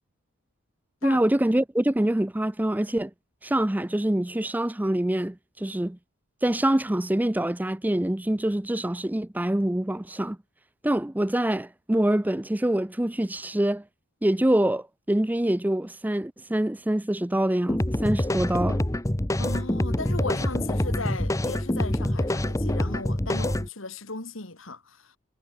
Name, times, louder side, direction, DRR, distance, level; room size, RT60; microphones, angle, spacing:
voice 1, 1.0-3.1 3.4-6.0 6.4-10.4 10.8-13.8 14.2-18.8, right 1 dB, 10° right, 0.5 m, -25 dB
sound 1, 17.7-23.7, left 1 dB, 15° left, 0.9 m, -26 dB
voice 2, 19.4-25.2, left 3 dB, 65° left, 2.8 m, -36 dB
head